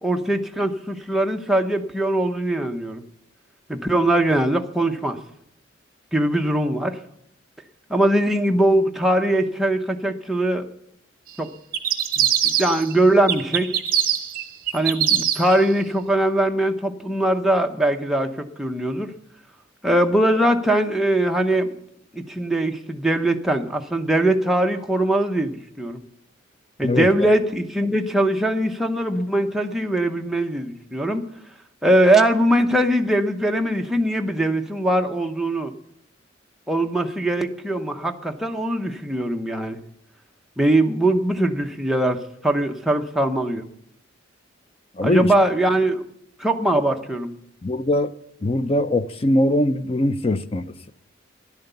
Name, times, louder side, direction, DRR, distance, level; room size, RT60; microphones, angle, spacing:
voice 1, 0.0-3.0 3.7-5.2 6.1-7.0 7.9-10.7 11.4-11.5 12.2-13.7 14.7-19.1 19.8-21.7 22.1-26.0 26.8-31.3 31.8-35.7 36.7-39.8 40.6-43.6 45.0-46.0 46.4-47.3, right 1 dB, ahead, 0.9 m, -21 dB
sound 1, 11.7-12.9 13.3-15.6, right 10 dB, 45° right, 1.4 m, -22 dB
voice 2, 26.8-27.3 45.0-45.3 47.6-48.1 48.4-50.9, left 1 dB, 30° left, 0.6 m, -22 dB
13.0 x 11.0 x 6.9 m
head